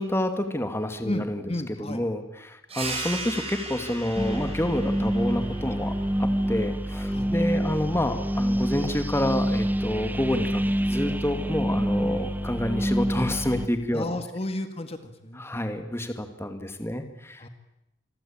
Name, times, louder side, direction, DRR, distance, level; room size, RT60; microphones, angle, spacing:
voice 1, 0.0-1.5 1.8-5.9 6.2-10.6 10.9-14.2 15.3-17.5, left 1 dB, 15° left, 7 dB, 2.1 m, -28 dB
voice 2, 1.0-2.0 7.1-7.3 13.9-15.4 17.4-17.5, left 1 dB, 30° left, 8 dB, 2.0 m, -33 dB
sound 1, 2.7-7.9, right 2 dB, 30° right, 6.9 m, -38 dB
sound 2, 4.2-13.7, equal, 10° right, 1.0 m, -27 dB
27.5 x 22.0 x 8.7 m, 0.89 s
head